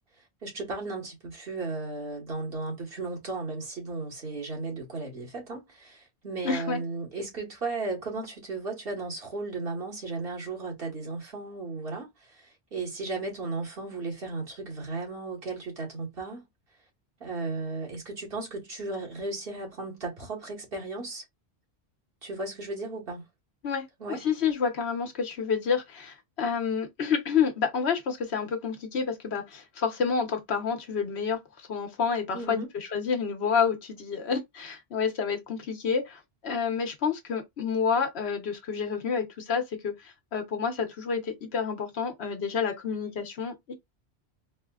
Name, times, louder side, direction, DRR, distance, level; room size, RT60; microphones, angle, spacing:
voice 1, 0.4-16.5 17.2-21.2 22.2-23.3 24.0-24.2 32.3-32.7, right 3 dB, 60° right, 1.6 m, -35 dB
voice 2, 6.4-6.8 23.6-43.7, left 6 dB, 75° left, 1.2 m, -29 dB
4.1 x 2.1 x 2.3 m
omnidirectional pair, 1.1 m